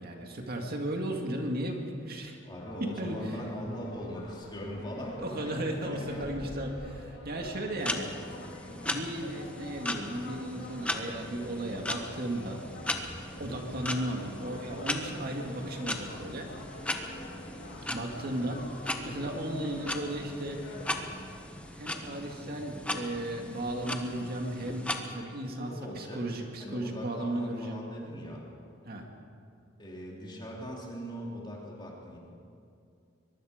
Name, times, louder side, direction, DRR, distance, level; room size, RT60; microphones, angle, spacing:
voice 1, 0.0-2.4 2.8-3.4 5.2-8.1 8.8-12.6 13.4-16.5 17.9-20.7 21.7-27.8 28.8-29.1, right 1 dB, 50° right, 2 dB, 2.2 m, -35 dB
voice 2, 2.4-5.5 5.8-6.3 25.1-26.2 26.6-28.4 29.8-32.2, equal, 25° left, -3 dB, 3.2 m, -40 dB
sound 1, 2.6-21.1, left 1 dB, 60° left, 3.8 m, -46 dB
sound 2, 7.8-25.0, left 1 dB, 5° left, 1.3 m, -38 dB
23.0 x 22.5 x 5.2 m, 2.5 s
head